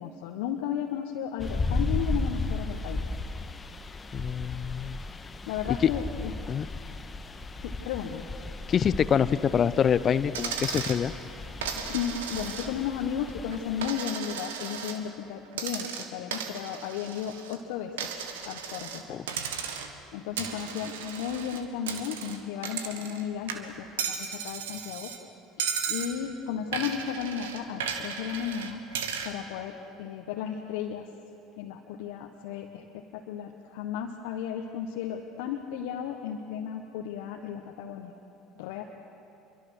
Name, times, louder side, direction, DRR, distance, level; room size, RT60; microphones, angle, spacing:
voice 1, 0.0-3.0 5.5-6.3 7.6-8.2 11.9-17.9 18.4-19.2 20.1-25.1 25.9-28.8 29.2-31.1 31.6-38.1 38.6-38.8, left 8 dB, 70° left, 1 dB, 1.4 m, -34 dB
sound 1, 1.4-13.9, left 2 dB, 25° left, 1.5 m, -35 dB
voice 2, 4.1-5.0 6.5-6.7 8.7-11.1 19.1-19.2, left 8 dB, 40° left, 15 dB, 0.8 m, -25 dB
Coin (dropping), 10.3-11.0 11.6-12.9 13.3-15.0 15.5-17.6 18.0-19.0 19.3-20.0 20.4-23.2 23.5-25.2 25.6-26.1 26.7-29.3, right 7 dB, 80° right, 1.6 m, -35 dB
27.0 x 23.5 x 6.4 m, 2.5 s
hypercardioid pair, 65°, 0 cm